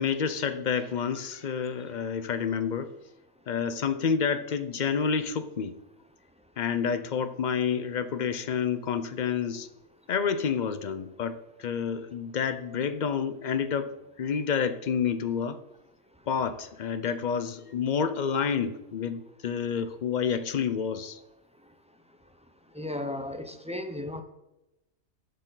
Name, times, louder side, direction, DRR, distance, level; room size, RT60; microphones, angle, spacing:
voice 1, 0.0-2.9 3.5-5.8 6.6-9.7 10.1-13.9 14.2-15.6 16.3-21.2, left 6 dB, 50° left, 12 dB, 0.6 m, -29 dB
voice 2, 22.7-24.2, left 1 dB, 10° right, 6 dB, 0.5 m, -34 dB
11.5 x 6.7 x 3.9 m, 0.91 s
omnidirectional pair, 1.3 m